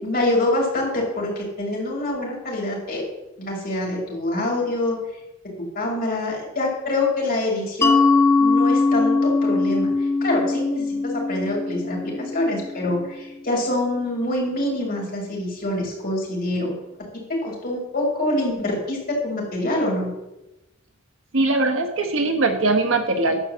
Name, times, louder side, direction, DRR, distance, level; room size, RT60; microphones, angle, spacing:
voice 1, 0.0-3.0 3.4-5.0 5.7-8.1 8.4-16.7 17.3-20.1, left 1 dB, 50° left, -3 dB, 4.6 m, -25 dB
Mallet percussion, 7.8-13.2, left 3 dB, 15° left, 0.6 m, -21 dB
voice 2, 21.3-23.4, right 2 dB, 70° right, 5 dB, 1.4 m, -21 dB
12.0 x 4.9 x 7.4 m, 0.97 s
head